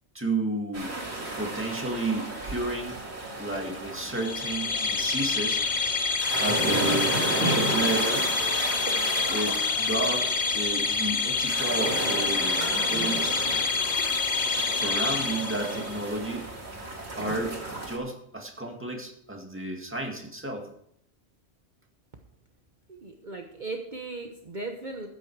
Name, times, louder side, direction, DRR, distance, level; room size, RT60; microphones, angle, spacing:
voice 1, 0.1-0.9 1.4-3.0 3.4-5.6 6.4-8.3 9.3-10.3 10.5-13.4 14.7-16.5 17.2-20.7, right 2 dB, 10° right, 1 dB, 2.1 m, -32 dB
sound 1, 0.7-18.0, right 2 dB, 85° right, 2.6 m, -33 dB
sound 2, 4.1-16.0, left 4 dB, 55° left, 1.0 m, -27 dB
voice 2, 22.9-25.1, right 3 dB, 45° right, 3 dB, 1.2 m, -37 dB
13.5 x 9.3 x 4.8 m, 0.70 s
omnidirectional pair, 1.1 m